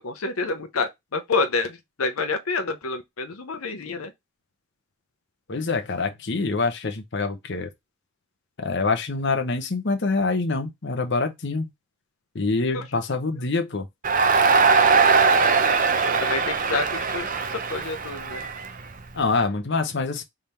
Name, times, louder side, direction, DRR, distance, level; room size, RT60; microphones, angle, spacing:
voice 1, 0.0-4.1 12.7-12.8 16.0-18.4, left 3 dB, 80° left, 0.8 m, -28 dB
voice 2, 5.5-7.7 8.6-11.7 12.3-13.9 19.1-20.2, left 3 dB, 55° left, 0.9 m, -25 dB
Crowd, 14.0-19.2, right 5 dB, 40° right, 0.7 m, -20 dB
3.6 x 3.4 x 4.3 m
head